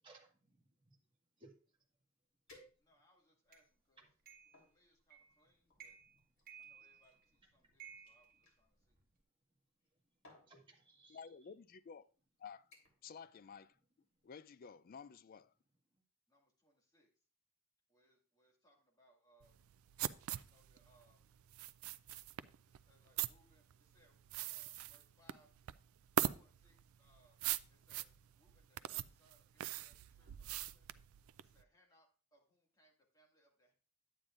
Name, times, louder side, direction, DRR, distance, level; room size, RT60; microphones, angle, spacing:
voice 1, 0.0-1.0 1.4-1.5 6.1-6.2 6.7-7.0 10.5-11.3, right 2 dB, 25° right, 1.7 m, -63 dB
sound 1, 2.5-3.2 3.9-4.7 5.7-8.6 9.7-9.9 10.2-10.5 11.4-11.6 12.0-12.3 12.7-13.1 13.4-13.8 14.2-14.3, left 2 dB, 70° left, 3.3 m, -66 dB
voice 2, 2.8-4.0 4.6-6.0 6.6-9.0 16.3-17.1 17.9-19.6 20.4-21.2 22.6-25.5 26.3-27.4 27.7-30.9 31.4-33.7, equal, 20° left, 2.0 m, -73 dB
sound 2, 3.5-3.7 4.3-4.6 5.1-5.4 5.7-6.2 6.5-7.3 7.8-9.0, right 8 dB, 45° right, 1.6 m, -57 dB
voice 3, 11.1-12.1 12.4-12.6 13.0-13.8 14.2-15.5, left 6 dB, 45° left, 0.3 m, -53 dB
sound 3, 19.4-31.6, right 11 dB, 85° right, 0.4 m, -42 dB
9.8 x 8.8 x 2.5 m
head